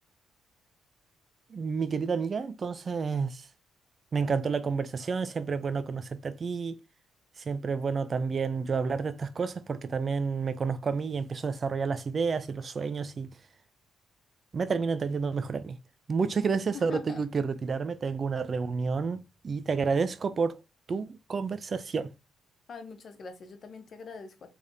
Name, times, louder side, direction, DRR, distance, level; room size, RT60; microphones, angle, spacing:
voice 1, 1.5-3.5 4.1-6.8 7.5-13.3 14.5-15.8 16.1-20.6 20.9-22.1, right 5 dB, 40° right, 0.5 m, -30 dB
voice 2, 16.7-17.2 22.7-24.5, left 4 dB, 50° left, 1.0 m, -43 dB
3.5 x 3.5 x 2.7 m
cardioid pair, 90°, 0 cm